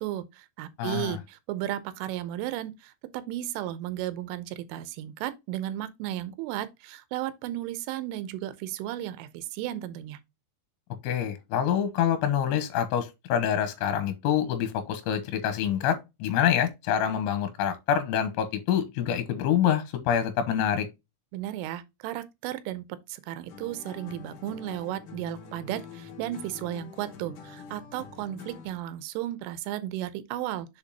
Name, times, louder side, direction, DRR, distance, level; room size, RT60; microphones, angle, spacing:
voice 1, 0.0-10.2 21.3-30.8, right 13 dB, 85° right, 3.3 m, -34 dB
voice 2, 0.8-1.2 11.0-20.9, left 9 dB, 80° left, 3.1 m, -26 dB
sound 1, 23.5-28.8, left 6 dB, 65° left, 2.2 m, -45 dB
7.0 x 5.2 x 2.8 m
omnidirectional pair, 5.6 m